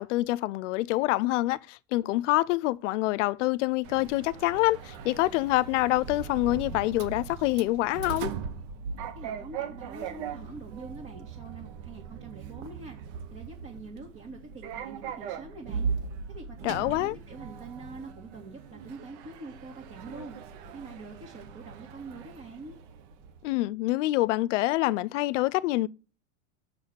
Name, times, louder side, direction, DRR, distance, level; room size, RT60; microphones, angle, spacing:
voice 1, 0.0-8.3 16.6-17.1 23.4-25.9, left 18 dB, 70° left, 0.6 m, -26 dB
Sliding door, 3.8-23.4, right 6 dB, 60° right, 1.2 m, -39 dB
voice 2, 9.1-13.0 13.3-15.9 16.3-20.4 20.7-22.8, right 3 dB, 30° right, 2.1 m, -45 dB
6.4 x 6.0 x 6.1 m
supercardioid pair, 120°, 38 cm